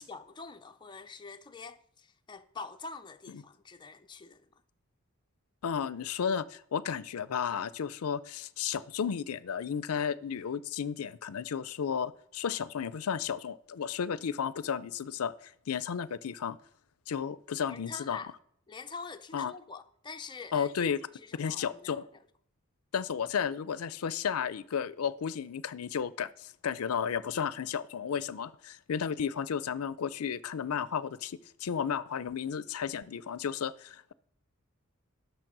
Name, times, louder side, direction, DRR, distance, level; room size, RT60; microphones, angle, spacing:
voice 1, 0.0-4.5 17.6-18.3 18.7-22.1, left 4 dB, 20° left, 0.5 m, -45 dB
voice 2, 5.6-16.6 17.1-18.2 19.3-19.5 20.5-21.0 21.4-22.0 22.9-34.1, left 7 dB, 85° left, 0.5 m, -33 dB
10.5 x 6.7 x 6.0 m
head